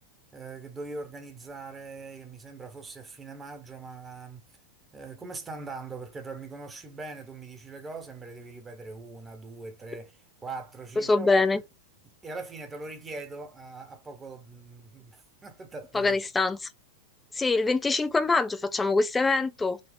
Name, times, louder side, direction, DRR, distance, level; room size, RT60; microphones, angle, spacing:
voice 1, 0.3-4.6 4.9-10.1 10.4-11.4 12.2-16.1, right 3 dB, 15° right, 0.9 m, -41 dB
voice 2, 11.0-11.6 15.9-16.7 17.3-19.8, left 3 dB, 10° left, 0.4 m, -24 dB
3.9 x 2.3 x 3.4 m
figure-of-eight pair, 90°, 0 cm